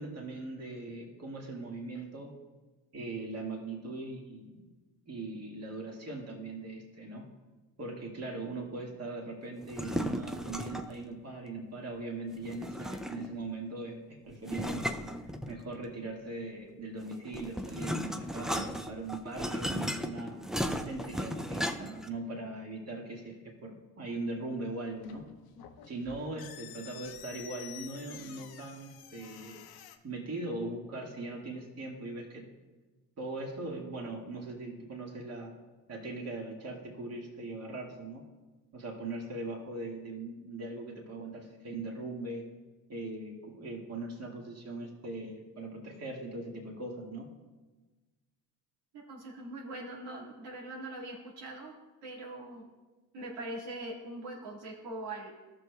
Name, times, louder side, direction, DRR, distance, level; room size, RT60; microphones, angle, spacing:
voice 1, 0.0-2.3 2.9-4.7 5.1-7.3 7.8-14.9 15.5-20.4 20.8-25.2 25.9-29.6 30.0-32.5 33.2-35.5 35.9-38.2 38.7-42.5 42.9-47.3, right 2 dB, 40° right, -1 dB, 1.9 m, -40 dB
sound 1, 9.6-11.0 12.4-13.4 14.5-15.8 17.0-22.1, equal, ahead, 0.5 m, -35 dB
sound 2, 24.9-30.0, left 10 dB, 65° left, 0.8 m, -50 dB
voice 2, 48.9-51.7 52.0-52.6 53.1-55.3, right 2 dB, 75° right, -3 dB, 2.0 m, -42 dB
13.5 x 6.5 x 2.3 m, 1.2 s
supercardioid pair, 70°, 40 cm